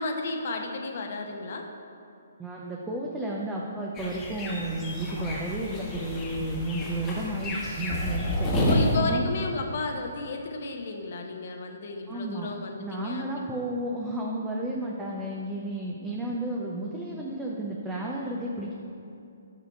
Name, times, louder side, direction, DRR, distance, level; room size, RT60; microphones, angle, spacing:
voice 1, 0.0-1.7 8.6-13.5, left 2 dB, 55° left, 3 dB, 0.9 m, -33 dB
voice 2, 2.4-9.3 12.1-12.5 12.8-18.7, right 1 dB, 10° right, -3 dB, 0.6 m, -32 dB
sound 1, 3.9-9.0, left 1 dB, 15° left, 1.3 m, -30 dB
6.9 x 4.9 x 4.5 m, 2.7 s
hypercardioid pair, 140°, 0 cm